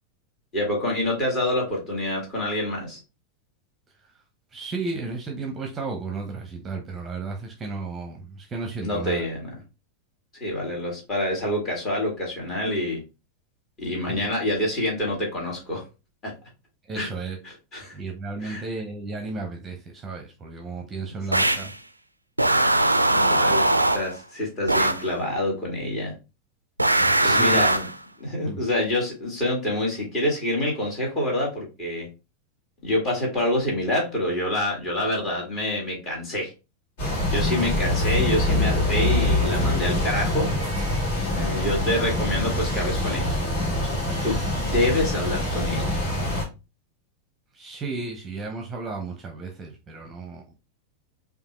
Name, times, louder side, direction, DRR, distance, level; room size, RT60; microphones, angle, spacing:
voice 1, 0.5-3.0 8.8-9.5 10.4-13.0 13.8-15.8 16.2-16.3 17.0-17.1 17.7-18.0 18.4-18.6 23.1-26.1 27.2-27.8 28.2-32.1 32.8-36.5 37.3-40.5 41.3-43.4 43.8-44.0 44.2-46.0, left 1 dB, 30° left, 2.2 m, -27 dB
voice 2, 4.5-9.3 14.1-14.2 16.9-17.4 17.9-21.7 27.0-27.8 28.4-28.6 37.6-38.0 47.5-50.4, right 3 dB, 20° right, 0.8 m, -34 dB
sound 1, 21.3-21.7 22.4-24.2 24.7-25.1 26.8-28.0, right 2 dB, 85° right, 0.3 m, -20 dB
sound 2, 37.0-46.4, left 1 dB, 50° left, 2.0 m, -24 dB
5.0 x 2.6 x 3.1 m
figure-of-eight pair, 90°, 0 cm